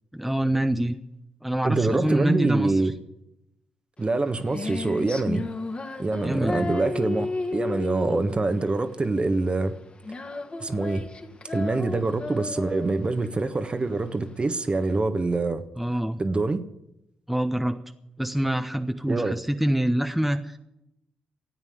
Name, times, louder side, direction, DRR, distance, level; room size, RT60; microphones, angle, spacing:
voice 1, 0.1-1.0 1.4-2.7 6.2-6.7 15.8-16.2 17.3-17.8 18.2-20.6, right 1 dB, 5° right, 1.0 m, -25 dB
voice 2, 1.6-2.9 4.0-5.5 6.0-9.7 10.6-11.1 11.5-15.6 16.2-16.6 19.1-19.4, right 3 dB, 30° right, 1.4 m, -25 dB
Female singing, 4.0-15.0, left 3 dB, 35° left, 2.1 m, -34 dB
13.5 x 8.9 x 9.3 m
hypercardioid pair, 45°, 3 cm